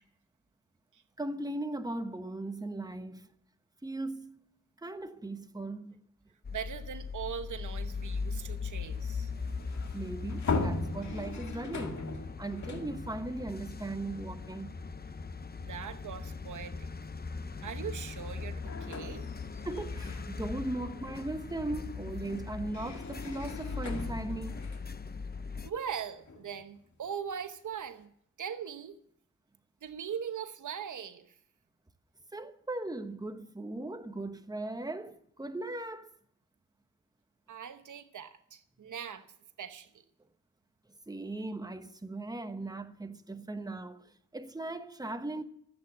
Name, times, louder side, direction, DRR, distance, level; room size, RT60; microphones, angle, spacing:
voice 1, 1.2-3.3 3.8-4.3 4.8-6.0 9.9-12.0 12.4-14.7 19.6-24.6 32.3-36.1 41.1-45.4, right 2 dB, 15° right, 1.2 m, -38 dB
sound 1, 6.4-25.7, left 4 dB, 30° left, 0.9 m, -40 dB
voice 2, 6.5-9.3 15.6-16.9 17.6-19.2 25.6-28.1 28.4-29.0 29.8-31.4 37.5-39.3 39.6-40.0, right 8 dB, 85° right, 1.0 m, -40 dB
sound 2, 8.4-14.7 15.1-15.3 16.4-16.6 17.0-26.8, left 3 dB, 70° left, 2.2 m, -40 dB
14.5 x 8.5 x 7.9 m
cardioid pair, 65°, 30 cm